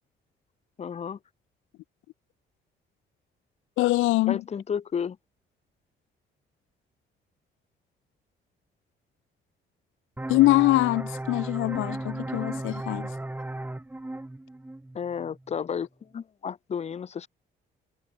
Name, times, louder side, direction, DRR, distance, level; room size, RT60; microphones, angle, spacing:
voice 1, 0.8-1.2 4.3-5.2 14.9-17.3, left 7 dB, 35° left, 0.6 m, -32 dB
voice 2, 3.8-4.4 10.3-13.1, left 19 dB, 85° left, 0.4 m, -23 dB
sound 1, 10.2-15.6, right 1 dB, 10° right, 1.1 m, -36 dB
cardioid pair, 90°, 20 cm